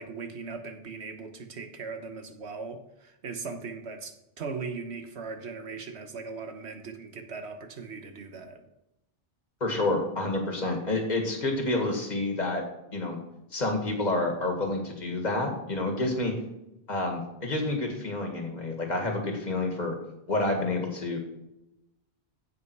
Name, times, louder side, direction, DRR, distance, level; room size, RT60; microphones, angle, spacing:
voice 1, 0.0-8.6, right 4 dB, 80° right, 6 dB, 1.4 m, -39 dB
voice 2, 9.6-12.6 12.9-13.2 13.5-16.3 16.9-20.0 20.3-21.2, left 2 dB, 40° left, 2 dB, 2.1 m, -29 dB
15.0 x 5.6 x 4.7 m, 0.88 s
omnidirectional pair, 1.1 m